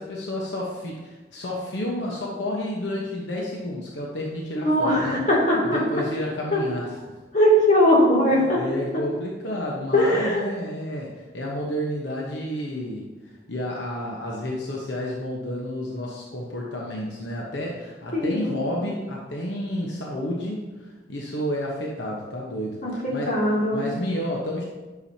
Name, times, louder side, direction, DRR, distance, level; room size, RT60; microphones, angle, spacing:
voice 1, 0.0-5.2 5.6-7.0 8.3-23.4 23.7-24.6, left 1 dB, 85° left, -2 dB, 1.0 m, -31 dB
voice 2, 4.5-5.8 6.5-6.6 7.3-8.6 9.9-10.4 18.1-18.6 22.8-23.8, equal, 45° left, -6 dB, 2.5 m, -20 dB
10.0 x 6.3 x 2.8 m, 1.2 s
head